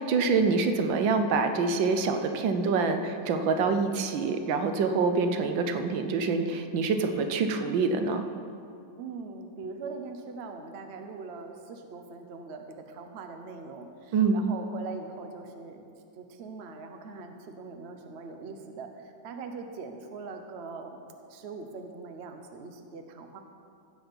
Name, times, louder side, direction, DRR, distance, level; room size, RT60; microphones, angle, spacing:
voice 1, 0.0-8.2 14.1-14.4, right 4 dB, 75° right, 7 dB, 1.5 m, -26 dB
voice 2, 9.0-15.8 16.2-21.0 21.3-23.4, right 4 dB, 50° right, 5 dB, 0.8 m, -41 dB
16.0 x 6.3 x 5.2 m, 2.4 s
omnidirectional pair, 2.1 m